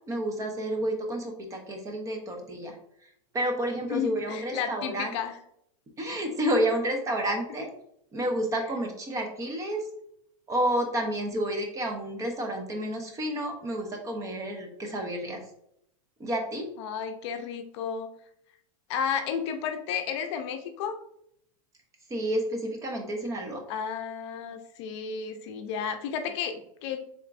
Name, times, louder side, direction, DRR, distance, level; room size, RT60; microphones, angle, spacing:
voice 1, 0.1-2.7 3.3-5.1 6.0-7.7 8.1-9.8 10.5-15.4 16.2-16.6 22.1-23.6, right 1 dB, 20° right, 3 dB, 0.8 m, -30 dB
voice 2, 3.9-5.3 16.8-18.1 18.9-20.9 23.7-27.0, left 7 dB, 55° left, 6 dB, 0.6 m, -32 dB
4.3 x 3.5 x 2.5 m, 0.73 s
supercardioid pair, 140°, 18 cm